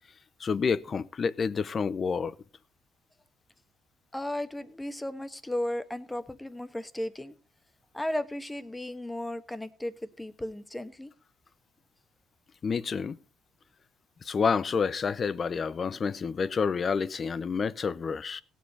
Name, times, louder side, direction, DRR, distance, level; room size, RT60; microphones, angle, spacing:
voice 1, 0.4-2.4 12.6-13.2 14.2-18.4, left 5 dB, 45° left, 0.6 m, -29 dB
voice 2, 4.1-7.3 7.9-11.1, left 1 dB, 10° left, 1.2 m, -35 dB
17.0 x 7.4 x 4.1 m
supercardioid pair, 65°, 0 cm